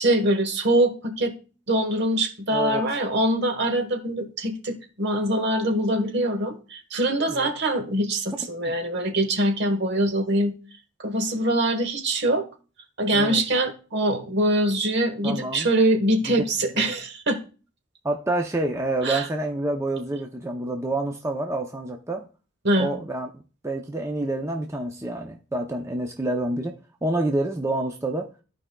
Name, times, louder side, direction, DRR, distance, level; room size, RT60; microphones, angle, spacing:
voice 1, 0.0-1.3 1.7-10.6 11.0-12.4 13.0-17.4 19.0-19.3 22.6-22.9, right 1 dB, 55° right, 1.2 m, -23 dB
voice 2, 2.5-2.8 7.3-7.5 13.1-13.4 15.2-15.7 16.3-16.4 16.7-16.9 18.0-22.2 22.8-23.3 23.6-26.7 27.0-28.3, right 2 dB, 15° right, 0.5 m, -28 dB
14.0 x 4.9 x 2.2 m
head